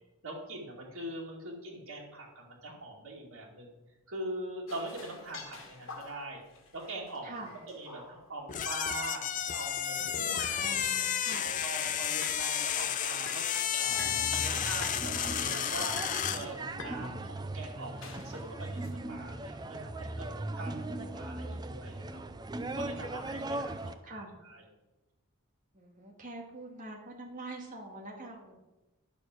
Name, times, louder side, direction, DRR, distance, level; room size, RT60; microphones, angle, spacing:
voice 1, 0.2-3.7 4.1-6.4 6.7-7.4 7.7-9.2 9.5-22.2 22.7-24.6, right 1 dB, 85° right, -4 dB, 2.6 m, -43 dB
sound 1, 4.7-9.0 9.3-13.0 13.3-14.3 14.6-15.0 15.4-17.0 17.8-18.9, left 3 dB, 70° left, 1.8 m, -48 dB
voice 2, 7.2-7.5 10.1-12.0 20.6-21.6 24.0-24.3 25.7-28.6, right 2 dB, 35° right, 0 dB, 2.2 m, -46 dB
sound 2, 8.5-16.5, left 9 dB, 35° left, 0.5 m, -32 dB
sound 3, 13.9-23.9, right 2 dB, 20° right, 0.5 m, -39 dB
11.0 x 6.5 x 6.3 m, 1.1 s
head